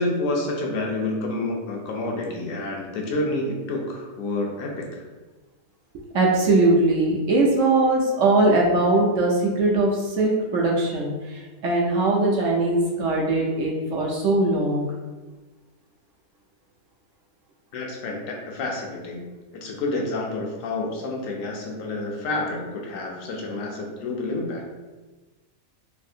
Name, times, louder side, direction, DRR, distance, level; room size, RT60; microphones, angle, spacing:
voice 1, 0.0-5.0 17.7-19.2 19.5-24.6, left 2 dB, 65° left, 0 dB, 1.0 m, -29 dB
voice 2, 6.1-14.9, right 2 dB, 70° right, -2 dB, 0.8 m, -21 dB
3.3 x 2.6 x 2.7 m, 1.2 s
omnidirectional pair, 1.7 m